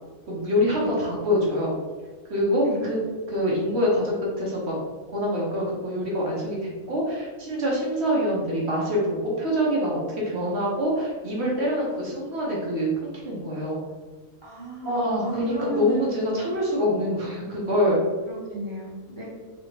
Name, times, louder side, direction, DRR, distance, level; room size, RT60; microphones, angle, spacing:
voice 1, 0.3-1.7 2.3-3.0 3.3-4.8 5.1-13.8 14.8-18.0, equal, 55° right, -4 dB, 1.1 m, -25 dB
voice 2, 14.4-16.0 16.4-16.6 18.3-19.2, left 1 dB, 30° left, -7 dB, 0.5 m, -34 dB
3.3 x 2.9 x 2.9 m, 1.4 s
omnidirectional pair, 1.5 m